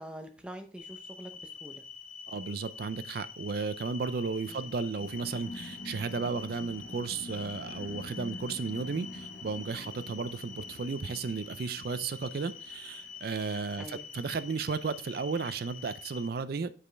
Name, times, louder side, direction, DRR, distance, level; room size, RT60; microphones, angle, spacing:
voice 1, 0.0-1.8 4.5-4.7 13.8-14.1, right 1 dB, 5° right, 4 dB, 0.7 m, -45 dB
sound 1, 0.8-16.3, left 6 dB, 40° left, 0.6 m, -46 dB
voice 2, 2.3-16.7, right 4 dB, 50° right, 14 dB, 0.4 m, -34 dB
sound 2, 5.0-13.1, left 1 dB, 85° left, 1.0 m, -46 dB
7.5 x 4.9 x 3.3 m, 0.39 s
head